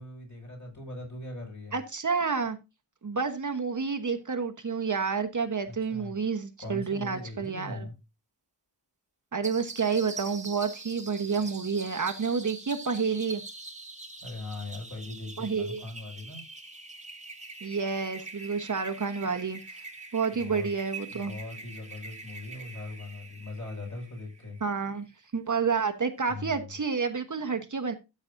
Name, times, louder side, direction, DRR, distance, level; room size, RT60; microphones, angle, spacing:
voice 1, 0.0-1.8 5.6-6.1 6.6-7.9 14.2-16.4 20.4-20.7 21.1-24.6 26.3-26.7, left 2 dB, 40° left, 6.1 m, -40 dB
voice 2, 1.7-2.6 3.0-7.9 9.3-13.4 15.4-15.8 17.6-19.8 20.1-21.3 24.6-25.0 25.3-27.9, right 5 dB, 45° right, 1.1 m, -29 dB
sound 1, 9.4-24.7, right 3 dB, 15° right, 1.5 m, -44 dB
13.5 x 7.1 x 2.6 m
wide cardioid pair, 115°, 43 cm